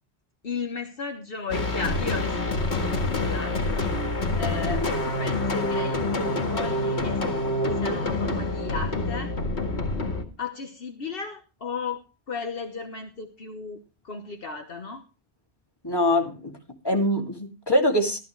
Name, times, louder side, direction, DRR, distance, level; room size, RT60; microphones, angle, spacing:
voice 1, 0.4-2.6 2.9-3.8 4.3-9.3 10.4-15.0, left 5 dB, 60° left, 5 dB, 1.4 m, -35 dB
sound 1, 1.5-10.2, left 2 dB, 85° left, 2.3 m, -27 dB
voice 2, 15.8-16.5 16.8-18.2, left 1 dB, 20° left, 2 dB, 2.7 m, -23 dB
14.0 x 14.0 x 3.2 m, 0.30 s
omnidirectional pair, 1.1 m